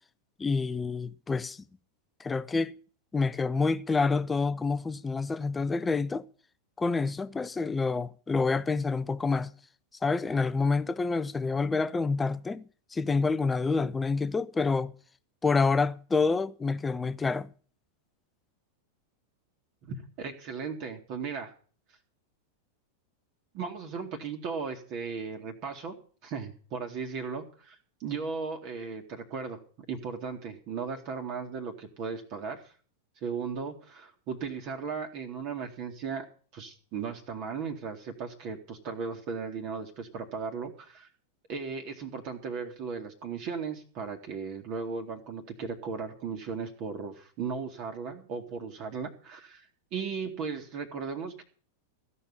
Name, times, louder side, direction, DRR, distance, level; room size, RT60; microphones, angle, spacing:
voice 1, 0.4-1.6 2.2-2.7 3.1-6.3 6.8-9.5 10.0-12.6 12.9-14.9 15.4-17.5, left 4 dB, 15° left, 0.7 m, -28 dB
voice 2, 19.8-21.5 23.5-25.9 26.2-29.6 29.9-32.7 33.2-36.3 36.5-41.1 41.5-51.4, right 5 dB, 40° right, 2.1 m, -36 dB
16.0 x 5.5 x 9.7 m
figure-of-eight pair, 90°, 0 cm